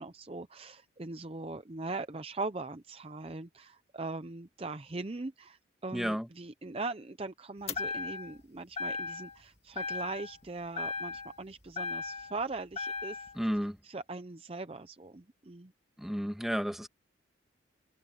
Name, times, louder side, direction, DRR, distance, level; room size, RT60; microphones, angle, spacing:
voice 1, 0.0-13.3 13.8-15.7, right 3 dB, 30° right, 0.6 m, -40 dB
voice 2, 5.9-6.3 13.4-13.8 16.0-16.9, equal, ahead, 2.0 m, -32 dB
sound 1, 7.7-8.4 8.8-9.4 9.8-10.5 10.8-12.4 12.8-13.4, left 4 dB, 35° left, 2.1 m, -37 dB
head